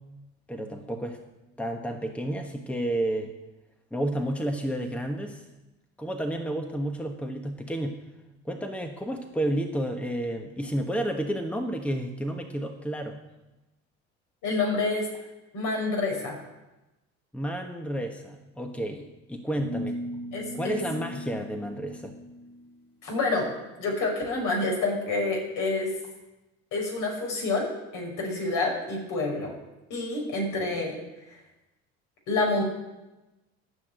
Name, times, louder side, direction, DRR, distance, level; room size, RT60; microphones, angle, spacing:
voice 1, 0.5-1.2 1.6-3.3 3.9-5.4 6.0-8.0 8.4-13.2 17.3-20.0 20.5-22.2, right 1 dB, 5° left, 4 dB, 1.3 m, -31 dB
voice 2, 14.4-15.1 15.5-16.4 20.3-20.8 23.0-23.5 23.8-25.9 26.7-29.5 29.9-31.0 32.3-32.6, left 3 dB, 65° left, 0 dB, 5.7 m, -28 dB
sound 1, 19.6-22.7, equal, 35° left, 3.4 m, -37 dB
13.0 x 6.1 x 9.1 m, 1.0 s
supercardioid pair, 85°, 34 cm